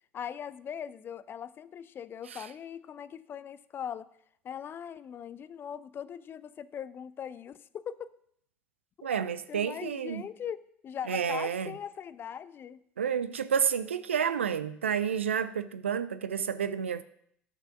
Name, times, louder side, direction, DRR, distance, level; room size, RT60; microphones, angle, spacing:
voice 1, 0.1-4.1 4.4-8.1 9.0-9.1 9.5-12.8, left 8 dB, 35° left, 0.5 m, -40 dB
voice 2, 9.0-10.2 11.1-11.7 13.0-17.0, right 7 dB, 80° right, 0.5 m, -30 dB
11.0 x 6.7 x 5.8 m
figure-of-eight pair, 65°, 7 cm